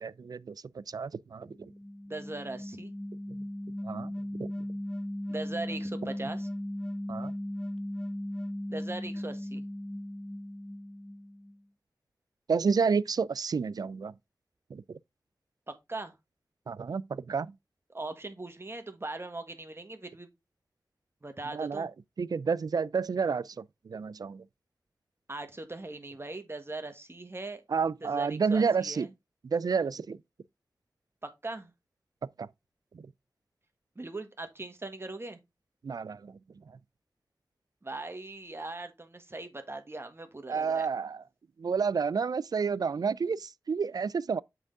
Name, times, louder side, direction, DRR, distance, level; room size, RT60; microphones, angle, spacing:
voice 1, 0.0-1.7 3.8-4.1 4.4-4.5 7.1-7.3 12.5-14.1 14.7-14.8 16.7-17.5 21.5-21.9 22.2-24.4 27.7-29.1 29.5-30.2 32.4-32.5 32.9-33.0 35.8-36.3 40.5-41.2 41.6-44.4, right 5 dB, 60° right, 0.3 m, -30 dB
sound 1, 1.5-11.6, left 1 dB, 10° left, 0.7 m, -37 dB
voice 2, 2.1-2.9 5.3-6.5 8.7-9.6 15.7-16.1 17.9-20.3 21.2-21.9 25.3-27.6 28.0-29.1 31.2-31.7 33.9-35.4 37.8-40.9, right 2 dB, 35° right, 1.4 m, -40 dB
7.7 x 3.6 x 3.8 m
cardioid pair, 40°, 7 cm